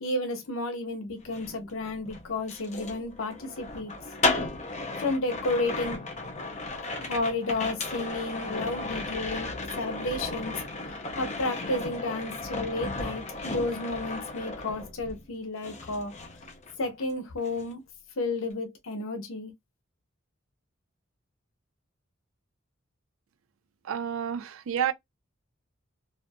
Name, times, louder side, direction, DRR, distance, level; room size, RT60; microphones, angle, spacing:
voice 1, 0.0-3.9 5.0-6.0 6.7-9.5 9.8-10.5 11.2-16.1 16.8-17.8 18.2-19.5, left 2 dB, 75° left, 0.7 m, -32 dB
sound 1, 1.2-15.3 15.6-17.1 17.4-17.7, left 3 dB, 35° left, 0.6 m, -35 dB
voice 2, 23.8-24.9, right 9 dB, 75° right, 0.4 m, -29 dB
2.5 x 2.5 x 2.3 m
head